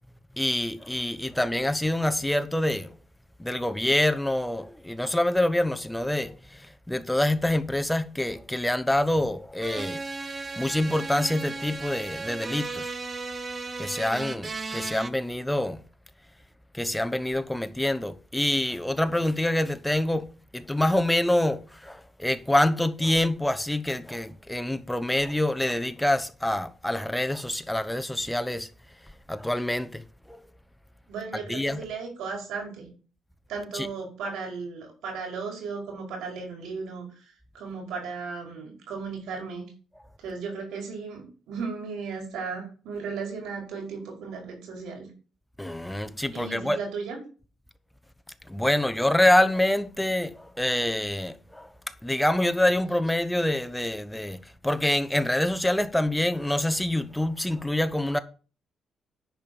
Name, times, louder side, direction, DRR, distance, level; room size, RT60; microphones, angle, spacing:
voice 1, 0.4-2.9 3.4-10.0 10.6-13.0 13.8-15.8 16.7-28.7 29.3-30.4 31.5-31.8 33.7-33.9 45.6-46.8 48.5-51.7 52.0-58.2, left 1 dB, 5° left, 1.0 m, -26 dB
sound 1, 9.6-15.1, right 3 dB, 30° right, 0.9 m, -35 dB
voice 2, 31.1-32.9 33.5-39.7 40.2-45.1 46.3-47.2, right 5 dB, 85° right, 5.5 m, -36 dB
10.5 x 5.1 x 7.1 m
cardioid pair, 90°, 0 cm